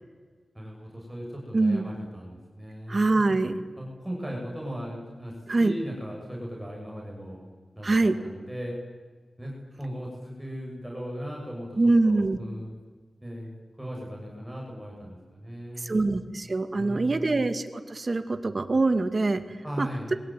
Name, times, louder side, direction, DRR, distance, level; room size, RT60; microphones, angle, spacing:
voice 1, 0.5-3.4 3.8-7.4 7.8-8.8 9.4-12.7 13.2-13.5 13.8-16.2 16.7-17.4 19.6-20.1, equal, 5° right, -2 dB, 7.3 m, -38 dB
voice 2, 1.5-1.9 2.9-3.5 5.5-5.7 7.8-8.1 11.8-12.4 15.8-19.4 19.8-20.1, right 2 dB, 40° right, 8 dB, 2.2 m, -24 dB
27.5 x 23.0 x 9.3 m, 1.4 s
wide cardioid pair, 105°, 0 cm